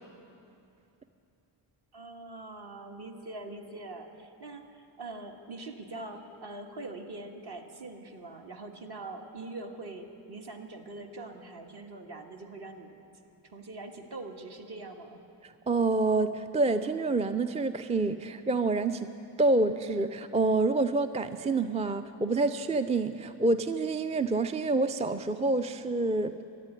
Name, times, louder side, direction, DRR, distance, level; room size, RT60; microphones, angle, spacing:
voice 1, 1.9-13.0 13.4-15.2, right 2 dB, 50° right, 3 dB, 1.7 m, -43 dB
voice 2, 15.4-19.1 19.4-26.4, right 3 dB, 15° right, 10 dB, 0.4 m, -27 dB
13.5 x 9.2 x 9.7 m, 2.7 s
cardioid pair, 65°, 50 cm